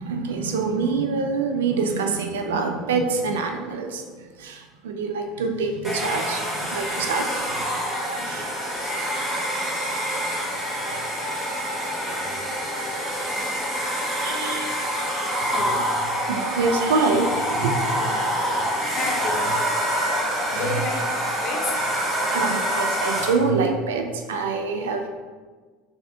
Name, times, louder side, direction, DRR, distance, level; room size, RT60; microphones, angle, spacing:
voice 1, 0.0-7.5 8.2-8.5 14.2-14.8 16.3-17.8 20.3-20.6 22.3-25.1, right 4 dB, 80° right, 4 dB, 0.4 m, -26 dB
Domestic sounds home sounds, 5.8-23.5, equal, ahead, 1.4 m, -26 dB
voice 2, 8.2-8.6 15.5-15.9 18.0-18.4 18.9-19.7 20.1-21.1 21.4-21.8, left 4 dB, 45° left, 2 dB, 0.7 m, -32 dB
3.4 x 2.6 x 3.5 m, 1.4 s
hypercardioid pair, 80°, 0 cm